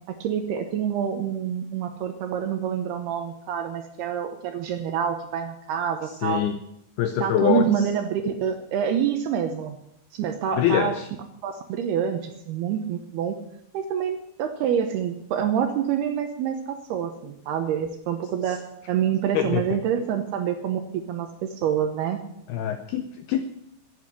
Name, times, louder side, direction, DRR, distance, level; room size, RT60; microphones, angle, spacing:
voice 1, 0.1-6.5 7.2-9.8 10.1-11.0 11.4-13.4 13.7-22.2, right 8 dB, 75° right, 7 dB, 2.5 m, -27 dB
voice 2, 6.2-6.6 7.0-7.6 10.6-11.1 19.3-19.6 22.5-23.4, left 9 dB, 90° left, 9 dB, 2.2 m, -24 dB
11.5 x 9.6 x 9.9 m, 0.78 s
omnidirectional pair, 5.5 m